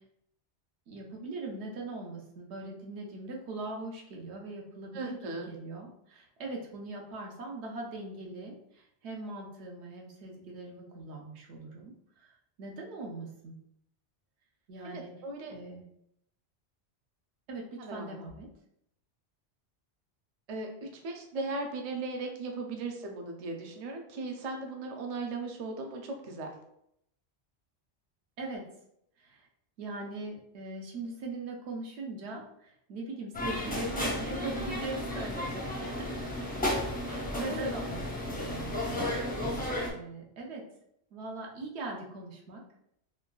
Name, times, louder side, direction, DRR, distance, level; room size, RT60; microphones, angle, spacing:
voice 1, 0.9-12.3 12.6-13.6 14.7-15.1 15.5-15.9 17.5-18.5 28.4-28.6 29.2-29.5 29.8-36.1 37.1-39.1 39.8-40.6 41.1-42.6, right 2 dB, 75° right, 0 dB, 0.9 m, -41 dB
voice 2, 4.9-5.5 14.9-15.5 17.8-18.1 20.5-26.5 37.5-37.7, right 3 dB, 55° right, 2 dB, 0.4 m, -37 dB
sound 1, 33.3-39.9, left 1 dB, 15° left, 0.3 m, -33 dB
3.5 x 2.2 x 2.2 m, 0.75 s
omnidirectional pair, 1.1 m